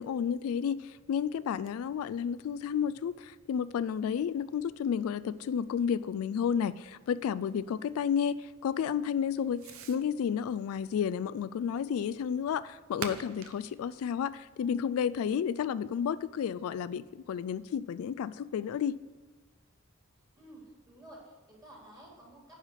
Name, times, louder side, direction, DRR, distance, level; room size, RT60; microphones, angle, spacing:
voice 1, 0.0-9.6 9.9-19.0, left 7 dB, 75° left, 17 dB, 0.3 m, -31 dB
Fireworks, 0.9-15.5, right 5 dB, 65° right, 0.7 m, -51 dB
voice 2, 20.3-22.5, right 1 dB, 15° right, -4 dB, 3.4 m, -52 dB
9.6 x 5.7 x 6.6 m, 1.3 s
head